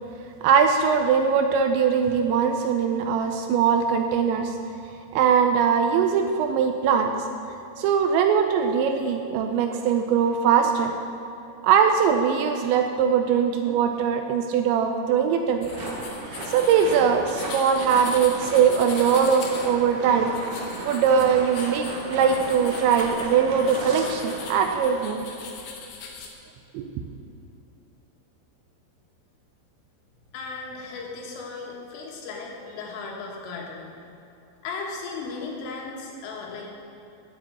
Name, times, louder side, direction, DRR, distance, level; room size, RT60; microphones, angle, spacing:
voice 1, 0.4-4.6 5.1-7.1 7.8-11.0 11.6-15.7 16.5-20.3 20.8-25.3 26.7-26.9, right 7 dB, 80° right, 5 dB, 2.7 m, -21 dB
sound 1, 15.6-26.3, left 5 dB, 65° left, 2.7 m, -41 dB
sound 2, 15.7-25.3, right 2 dB, 55° right, 2.6 m, -36 dB
voice 2, 30.3-34.0 34.6-36.7, left 4 dB, 85° left, -1 dB, 4.2 m, -36 dB
9.7 x 8.3 x 8.0 m, 2.9 s
omnidirectional pair, 5.6 m